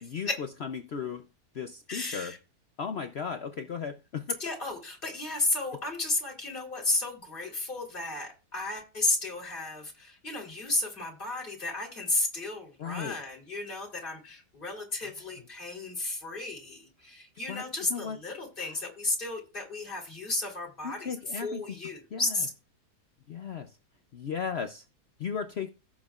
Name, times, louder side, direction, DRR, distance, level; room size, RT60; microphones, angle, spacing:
voice 1, 0.1-1.2 1.5-2.3 2.8-4.4 12.8-13.1 15.0-15.1 17.5-17.6 17.9-18.2 18.6-18.7 20.8-21.6 22.1-22.2 23.3-23.7 24.1-24.8 25.2-25.7, left 6 dB, 55° left, 7 dB, 0.8 m, -35 dB
voice 2, 1.9-2.4 4.4-21.2 21.4-22.5, left 2 dB, 30° left, 0 dB, 3.5 m, -33 dB
17.0 x 7.3 x 2.4 m, 0.29 s
omnidirectional pair, 1.7 m